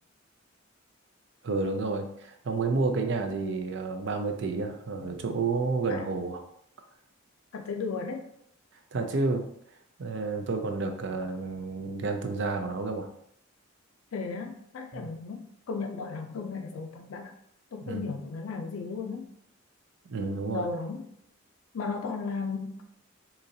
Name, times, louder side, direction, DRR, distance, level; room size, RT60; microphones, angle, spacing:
voice 1, 1.4-6.4 8.9-9.5 10.0-13.1 14.9-15.1 17.8-18.1 20.1-20.7, right 3 dB, 60° right, 5 dB, 0.5 m, -30 dB
voice 2, 5.0-5.4 5.9-6.1 7.5-8.2 14.1-17.3 17.7-19.3 20.5-21.0 21.7-22.8, left 4 dB, 90° left, 4 dB, 0.4 m, -35 dB
3.8 x 3.0 x 2.7 m, 0.71 s
head